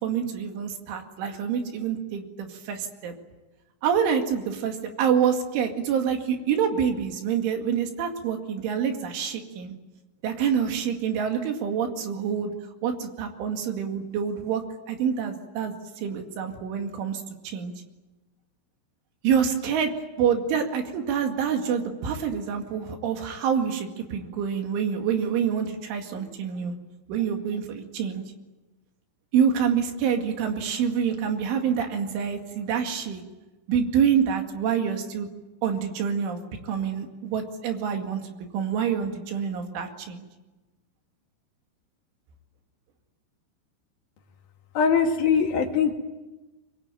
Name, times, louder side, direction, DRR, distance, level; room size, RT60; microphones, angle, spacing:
voice 1, 0.0-3.1 3.8-9.7 10.2-12.5 12.8-17.7 19.2-19.9 20.2-26.7 27.1-28.2 29.3-33.2 33.7-35.3 35.6-38.2 38.5-40.3, right 7 dB, 75° right, 4 dB, 4.6 m, -27 dB
voice 2, 44.8-45.9, left 6 dB, 55° left, 2 dB, 3.6 m, -21 dB
24.0 x 22.5 x 9.1 m, 1.1 s
omnidirectional pair, 5.7 m